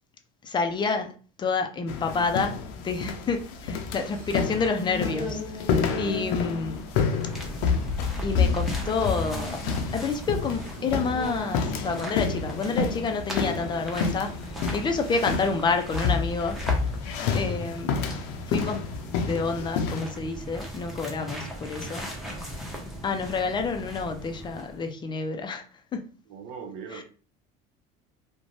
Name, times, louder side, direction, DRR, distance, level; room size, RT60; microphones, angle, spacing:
voice 1, 0.4-5.7 6.0-6.8 8.2-9.6 9.9-16.6 17.3-18.0 18.5-18.9 19.3-22.1 23.0-25.7 25.9-26.1 26.9-27.0, left 4 dB, 25° left, 0.4 m, -29 dB
sound 1, 1.9-20.0, left 5 dB, 75° left, 0.5 m, -29 dB
sound 2, 2.1-12.3, left 1 dB, 45° right, 1.0 m, -40 dB
voice 2, 5.9-6.4 26.3-27.0, right 7 dB, 75° right, 0.7 m, -39 dB
sound 3, 6.6-24.9, equal, ahead, 0.8 m, -38 dB
2.5 x 2.1 x 3.1 m
supercardioid pair, 115°, 18 cm